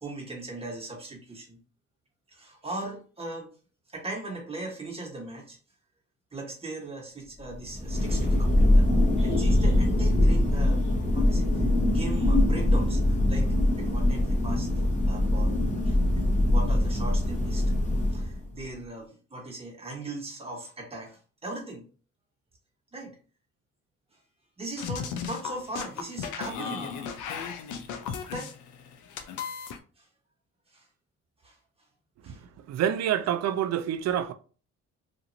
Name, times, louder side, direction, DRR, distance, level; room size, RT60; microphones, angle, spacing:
voice 1, 0.0-1.6 2.3-3.5 3.9-5.6 6.3-8.9 9.2-13.0 13.3-13.5 13.8-15.6 15.8-17.7 18.1-21.8 22.9-23.2 24.6-26.9 28.3-28.5 30.0-30.1 30.7-30.9 31.4-31.6 32.2-32.4, right 2 dB, 20° right, 1.2 m, -39 dB
Thunder, 7.5-18.6, left 1 dB, 25° left, 0.9 m, -23 dB
sound 1, 24.8-29.8, left 6 dB, 85° left, 0.6 m, -35 dB
voice 2, 32.7-34.3, right 10 dB, 60° right, 0.5 m, -27 dB
3.0 x 2.5 x 2.7 m
cardioid pair, 90°, 30 cm